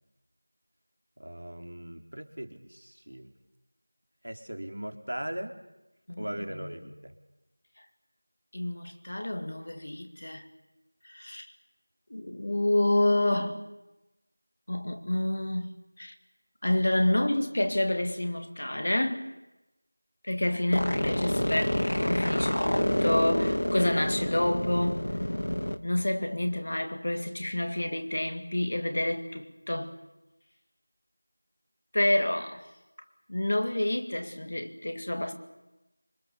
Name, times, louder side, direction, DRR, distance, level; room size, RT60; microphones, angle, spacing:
voice 1, 1.2-3.3 4.2-5.6 6.2-7.1, right 1 dB, 60° right, 3.5 m, -39 dB
voice 2, 6.6-6.9 8.5-10.4 11.0-11.5 12.1-13.6 14.7-16.1 16.6-19.3 20.2-25.0 25.8-29.9 31.9-32.6 33.3-35.3, left 1 dB, 35° left, 1.9 m, -28 dB
sound 1, 20.7-25.8, left 1 dB, 60° left, 1.6 m, -28 dB
26.0 x 24.5 x 6.9 m
figure-of-eight pair, 175°, 0 cm